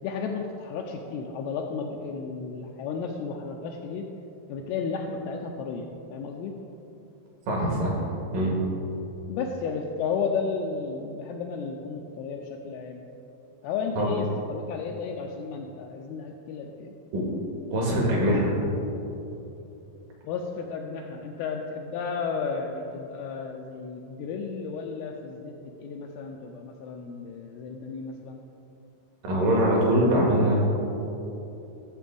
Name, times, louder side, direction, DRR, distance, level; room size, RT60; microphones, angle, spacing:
voice 1, 0.0-4.1 4.5-6.6 9.3-13.0 13.6-16.9 20.2-25.5 25.8-28.4, left 5 dB, 80° left, 1 dB, 2.4 m, -33 dB
voice 2, 7.5-8.0 8.3-8.6 14.0-14.1 17.1-17.3 17.7-18.5 29.3-30.6, right 1 dB, 60° right, -3 dB, 2.9 m, -22 dB
13.5 x 7.2 x 3.4 m, 2.9 s
omnidirectional pair, 4.7 m